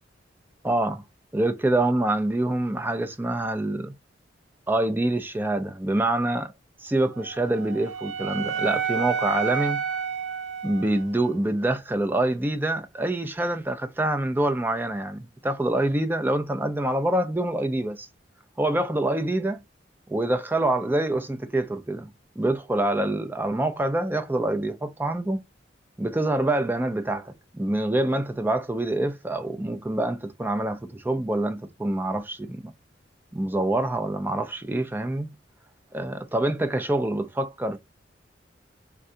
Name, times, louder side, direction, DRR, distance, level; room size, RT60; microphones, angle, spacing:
voice 1, 0.6-1.0 1.3-3.9 4.7-6.5 6.8-9.8 10.6-18.1 18.6-19.6 20.1-22.1 22.4-25.4 26.0-32.6 33.3-35.3 35.9-37.8, right 1 dB, 10° right, 0.4 m, -26 dB
Wind instrument woodwind instrument, 7.1-11.3, right 6 dB, 85° right, 0.8 m, -30 dB
3.5 x 2.2 x 2.5 m
head